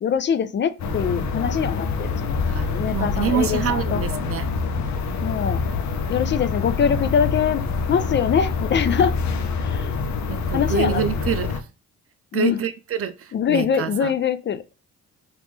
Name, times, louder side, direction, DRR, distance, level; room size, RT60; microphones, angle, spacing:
voice 1, 0.0-2.4 2.7-4.0 5.2-5.6 6.1-9.2 9.6-10.0 10.5-11.0 12.3-12.6 13.3-14.8, left 7 dB, 40° left, 0.4 m, -23 dB
sound 1, 0.8-11.6, left 4 dB, 65° left, 0.7 m, -26 dB
voice 2, 2.5-4.5 10.3-11.7 12.3-14.1, right 8 dB, 50° right, 0.5 m, -26 dB
3.5 x 2.6 x 3.1 m
cardioid pair, 90°, 30 cm